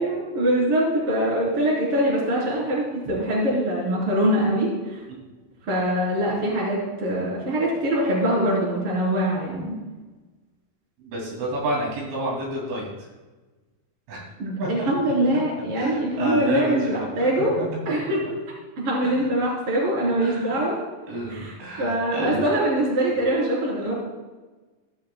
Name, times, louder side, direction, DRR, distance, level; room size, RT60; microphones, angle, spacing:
voice 1, 0.0-5.0 5.6-9.8 14.4-17.5 17.9-18.3 18.8-20.8 21.3-23.9, right 1 dB, 30° right, -5 dB, 4.0 m, -23 dB
voice 2, 11.0-12.9 14.1-14.2 14.6-14.7 15.8-17.3 17.6-17.7 18.1-18.2 19.0-19.1 20.2-20.5 21.1-22.6, right 1 dB, 70° right, -3 dB, 4.9 m, -29 dB
15.0 x 12.5 x 2.3 m, 1.3 s
omnidirectional pair, 5.9 m